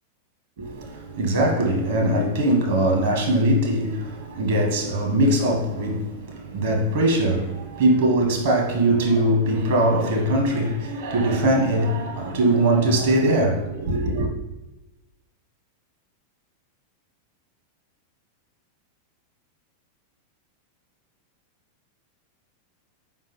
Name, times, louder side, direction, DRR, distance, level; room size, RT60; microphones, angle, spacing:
voice 1, 0.6-14.3, right 1 dB, 60° right, 1.1 m, -21 dB
4.8 x 3.6 x 3.0 m
figure-of-eight pair, 90°, 0 cm